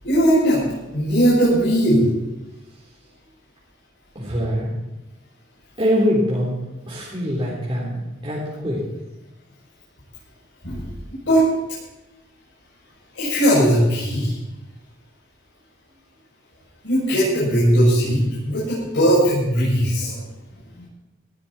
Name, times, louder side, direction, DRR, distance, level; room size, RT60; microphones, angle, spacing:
voice 1, 0.0-0.6 0.9-2.1 10.6-10.8 11.3-11.5 13.1-14.3 16.8-20.2 20.8-20.9, equal, 70° left, -10 dB, 7.8 m, -18 dB
voice 2, 4.2-4.7 5.8-6.6 6.9-8.8, equal, 30° right, -6 dB, 4.0 m, -23 dB
20.0 x 15.5 x 4.4 m, 1.0 s
head